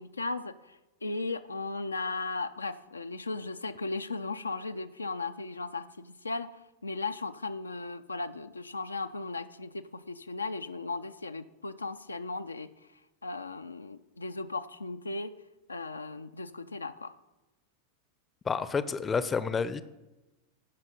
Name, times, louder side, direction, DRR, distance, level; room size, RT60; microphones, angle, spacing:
voice 1, 0.0-6.5 6.8-12.7 13.2-15.3 15.7-17.1, left 3 dB, 80° left, 10 dB, 0.4 m, -36 dB
voice 2, 18.4-19.8, left 5 dB, 20° left, 14 dB, 0.5 m, -29 dB
15.0 x 5.6 x 5.2 m, 1.0 s
figure-of-eight pair, 90°, 0 cm